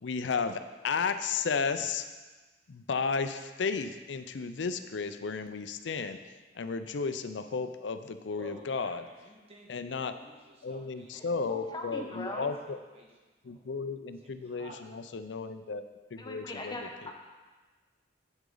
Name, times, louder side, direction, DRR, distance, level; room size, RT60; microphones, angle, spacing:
voice 1, 0.0-2.1 2.7-6.2 6.5-9.0 9.7-10.1 10.6-12.8 13.4-15.8 16.1-17.1, left 5 dB, 75° left, 10 dB, 0.5 m, -33 dB
voice 2, 8.4-13.1 13.4-13.6 14.2-15.2, right 2 dB, 35° right, -1 dB, 1.4 m, -53 dB
voice 3, 11.5-12.5 16.2-17.1, left 1 dB, 25° left, 2 dB, 0.9 m, -40 dB
8.2 x 8.1 x 3.9 m, 1.3 s
head